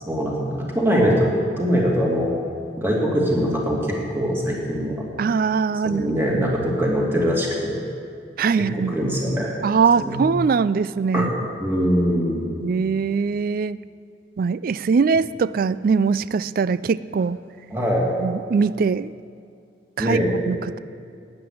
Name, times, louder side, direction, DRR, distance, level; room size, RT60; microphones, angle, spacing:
voice 1, 0.1-1.3 1.6-2.3 2.8-5.0 5.8-7.8 8.7-9.6 10.0-10.2 11.1-11.3 11.6-12.5 17.7-18.1 20.0-20.3, equal, 15° right, -3 dB, 2.3 m, -22 dB
voice 2, 5.2-6.0 6.3-6.5 8.4-9.1 9.6-11.3 12.6-13.8 14.4-17.4 18.2-19.1 20.0-20.2 20.5-20.8, right 5 dB, 50° right, 17 dB, 0.3 m, -21 dB
11.5 x 9.5 x 8.7 m, 2.3 s
head